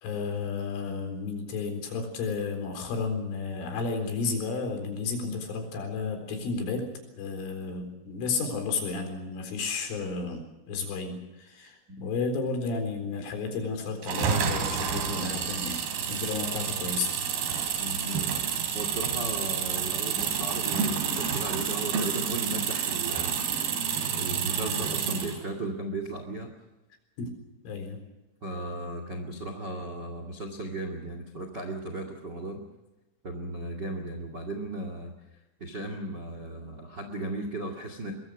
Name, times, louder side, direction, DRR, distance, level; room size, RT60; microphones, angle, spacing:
voice 1, 0.0-6.9 7.2-15.8 16.1-17.1 27.2-27.3 27.6-28.0, left 4 dB, 75° left, 5 dB, 6.5 m, -32 dB
sound 1, 14.0-25.4, right 7 dB, 55° right, 4.5 m, -29 dB
voice 2, 17.8-18.2 18.7-23.4 24.1-26.5 28.4-32.6 33.2-35.1 35.6-38.1, right 2 dB, 40° right, 5 dB, 1.5 m, -36 dB
23.0 x 22.0 x 6.4 m, 1.0 s
omnidirectional pair, 5.8 m